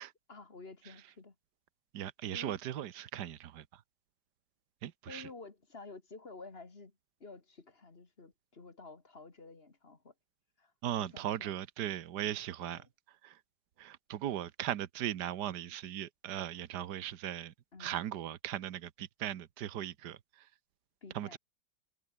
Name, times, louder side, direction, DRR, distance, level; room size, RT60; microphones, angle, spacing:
voice 1, 0.3-1.3 2.3-2.6 5.1-6.9 7.2-10.1 10.6-10.7 11.0-11.5 12.6-12.9 17.7-18.0 21.0-21.4, left 3 dB, 35° left, 2.3 m, -51 dB
voice 2, 1.9-3.6 4.8-5.3 10.8-12.8 13.2-13.3 13.8-17.5 17.8-20.2 21.1-21.4, right 11 dB, 70° right, 1.6 m, -38 dB
omnidirectional pair, 1.9 m